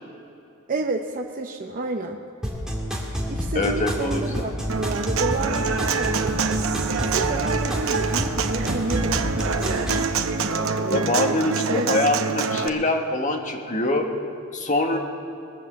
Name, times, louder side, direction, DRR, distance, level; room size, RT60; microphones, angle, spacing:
voice 1, 0.7-2.2 3.3-6.3 7.0-10.0 10.5-12.0, right 3 dB, 40° right, 2 dB, 0.7 m, -30 dB
sound 1, 2.4-10.1, equal, 5° right, 1.9 m, -28 dB
voice 2, 3.5-4.5 10.9-14.1 14.5-15.0, left 2 dB, 35° left, 3 dB, 1.4 m, -24 dB
Human voice / Acoustic guitar, 4.7-12.7, right 5 dB, 80° right, 0.8 m, -26 dB
20.5 x 7.3 x 7.2 m, 2.7 s
head